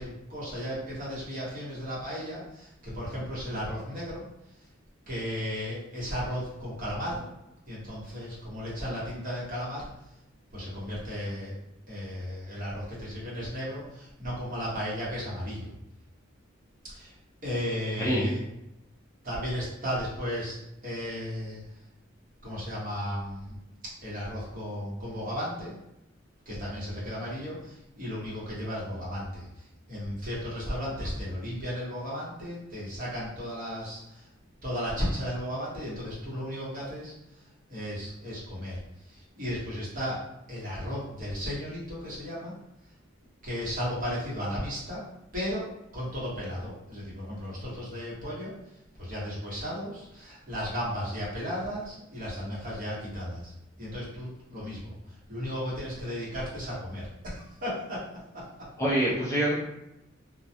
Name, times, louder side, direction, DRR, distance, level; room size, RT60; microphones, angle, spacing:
voice 1, 0.0-4.2 5.1-7.3 7.7-9.9 10.5-11.6 11.9-15.7 16.9-17.1 17.4-18.4 19.2-21.6 22.4-23.6 24.0-25.7 26.5-34.3 34.6-37.1 37.7-40.2 40.5-42.5 43.4-45.0 45.3-45.7 45.9-48.6 49.0-53.5 53.8-58.0 58.3-58.4, equal, 45° right, -7 dB, 1.0 m, -35 dB
voice 2, 58.8-59.5, right 1 dB, 15° left, -7 dB, 0.5 m, -25 dB
2.3 x 2.1 x 2.6 m, 0.86 s
head